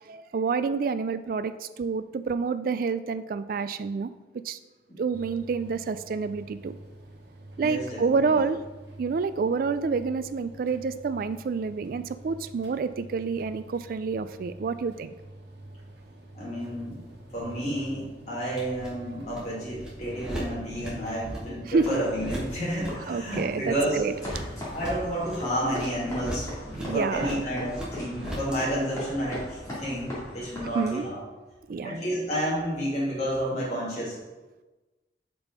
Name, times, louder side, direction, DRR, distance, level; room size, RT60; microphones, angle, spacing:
voice 1, 0.1-4.1 4.4-4.6 5.0-6.8 7.6-8.6 9.0-15.1 21.6-22.0 23.1-24.1 26.9-27.4 30.7-31.0 31.7-32.0, right 5 dB, 50° right, 12 dB, 0.3 m, -28 dB
sound 1, 5.1-24.2, right 1 dB, 70° right, 1.3 m, -47 dB
voice 2, 7.6-8.0 8.3-8.4 16.3-17.0 17.3-24.0 24.7-26.5 26.9-31.2 31.8-34.2, equal, 40° left, -7 dB, 2.1 m, -30 dB
sound 2, 16.6-28.6, right 1 dB, 5° right, 1.5 m, -40 dB
sound 3, 21.8-31.1, left 1 dB, 20° left, 2.1 m, -40 dB
5.3 x 4.5 x 5.1 m, 1.2 s
head